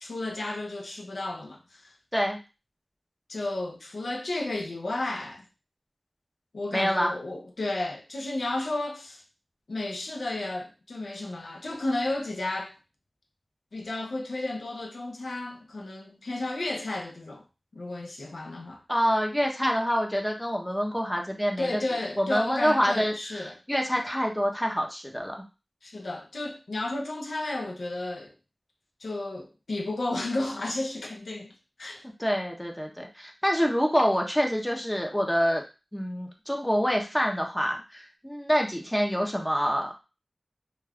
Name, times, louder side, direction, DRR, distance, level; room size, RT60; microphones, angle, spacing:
voice 1, 0.0-1.9 3.3-5.5 6.5-9.2 9.7-12.8 13.7-17.4 17.7-18.8 21.6-23.6 25.8-28.3 29.0-31.5 31.8-32.1, left 2 dB, 90° left, 0.5 m, -33 dB
voice 2, 6.7-7.1 18.9-21.8 22.2-25.4 32.2-35.6 35.9-39.9, equal, 10° left, 0.6 m, -26 dB
2.3 x 2.3 x 3.4 m
wide cardioid pair, 60°, 0 cm